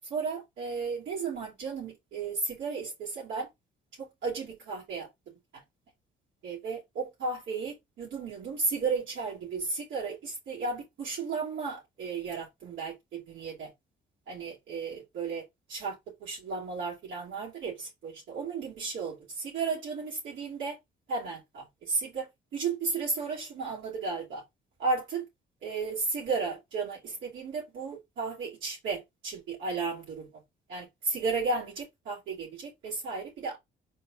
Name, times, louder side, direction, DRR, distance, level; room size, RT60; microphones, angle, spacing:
voice 1, 0.1-3.5 4.0-5.1 5.5-5.6 6.4-13.7 14.3-15.4 15.7-20.8 21.1-24.4 24.8-25.2 25.6-30.3 30.7-33.6, right 4 dB, 75° right, 2.7 m, -34 dB
4.5 x 4.0 x 2.4 m
cardioid pair, 90°, 20 cm